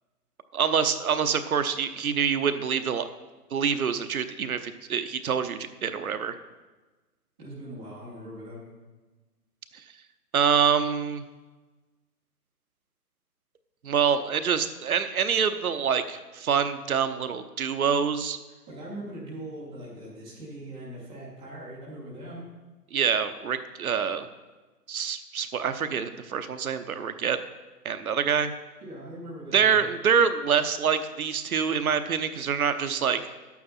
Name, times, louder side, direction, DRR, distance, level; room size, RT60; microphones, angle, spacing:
voice 1, 0.5-3.1 3.5-6.4 10.3-11.2 13.8-18.4 22.9-24.3 24.9-27.4 27.8-28.5 29.5-33.2, right 7 dB, 60° right, 10 dB, 0.8 m, -26 dB
voice 2, 7.4-8.6 18.7-22.5 26.1-26.2 28.8-29.8, right 1 dB, 5° right, -12 dB, 0.5 m, -40 dB
11.0 x 8.4 x 4.2 m, 1.2 s
figure-of-eight pair, 140°, 48 cm